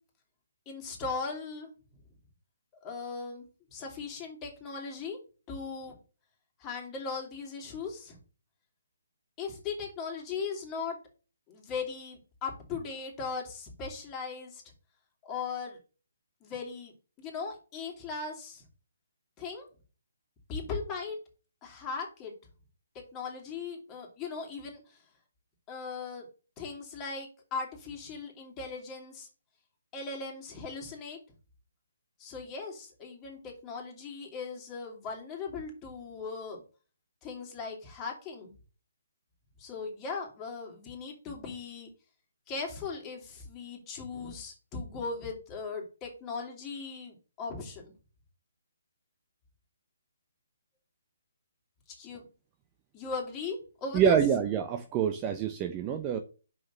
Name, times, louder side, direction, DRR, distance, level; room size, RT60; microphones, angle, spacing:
voice 1, 0.7-1.7 2.8-3.4 3.7-5.2 5.5-6.0 6.6-8.2 9.4-11.0 11.5-14.6 15.2-15.8 16.4-16.9 17.2-18.6 19.4-19.7 20.5-21.2 21.6-22.3 23.1-25.0 25.7-26.3 26.6-29.3 29.9-31.2 32.2-36.6 37.2-38.5 39.6-41.9 42.5-47.9 52.0-52.3 52.9-54.2, left 4 dB, 20° left, 2.8 m, -38 dB
voice 2, 53.9-56.2, right 8 dB, 20° right, 0.7 m, -26 dB
5.9 x 5.1 x 5.7 m
figure-of-eight pair, 145°, 0 cm